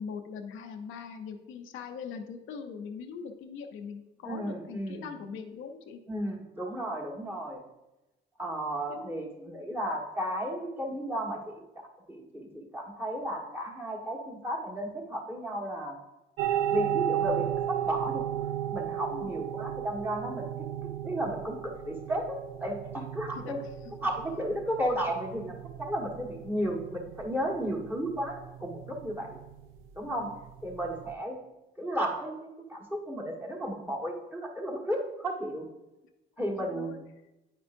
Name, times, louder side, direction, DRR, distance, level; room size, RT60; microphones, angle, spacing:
voice 1, 0.0-6.0 8.9-9.3 19.1-19.3 23.4-23.5 30.0-30.3 36.6-37.0, left 6 dB, 85° left, 4 dB, 0.7 m, -41 dB
voice 2, 4.2-5.1 6.1-7.6 8.4-16.0 16.7-18.2 18.7-20.5 20.8-23.6 24.0-29.4 29.9-30.3 30.6-31.4 31.8-35.7 36.4-37.0, equal, 10° right, -1 dB, 1.6 m, -34 dB
sound 1, 16.4-31.1, right 11 dB, 85° right, 0.5 m, -35 dB
9.0 x 5.2 x 2.6 m, 0.99 s
cardioid pair, 90°, 20 cm